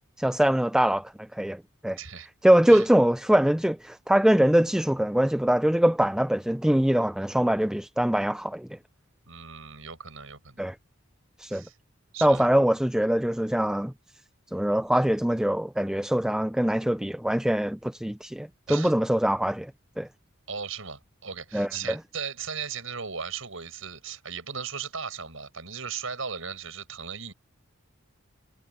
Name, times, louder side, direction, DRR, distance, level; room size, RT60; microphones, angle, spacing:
voice 1, 0.2-2.0 2.4-8.8 10.6-10.8 11.4-11.6 12.2-13.9 14.5-19.7 20.0-20.1 21.5-22.0, equal, 5° right, 0.4 m, -23 dB
voice 2, 2.0-2.3 2.7-2.9 9.3-10.6 11.5-11.8 12.1-12.5 18.7-18.9 20.5-27.3, right 6 dB, 75° right, 6.7 m, -37 dB
head